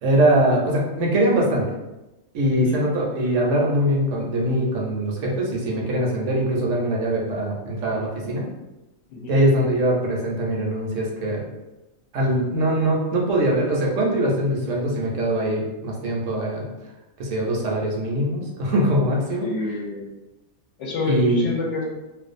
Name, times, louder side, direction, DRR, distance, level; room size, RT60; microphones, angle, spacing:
voice 1, 0.0-1.6 2.3-8.5 9.3-11.4 12.1-16.6 17.2-19.5 21.1-21.5, right 1 dB, 75° right, -1 dB, 0.9 m, -22 dB
voice 2, 2.5-2.8 9.1-9.4 19.4-20.1 20.8-21.8, left 2 dB, 70° left, -2 dB, 0.9 m, -28 dB
2.4 x 2.3 x 2.5 m, 1.0 s
omnidirectional pair, 1.4 m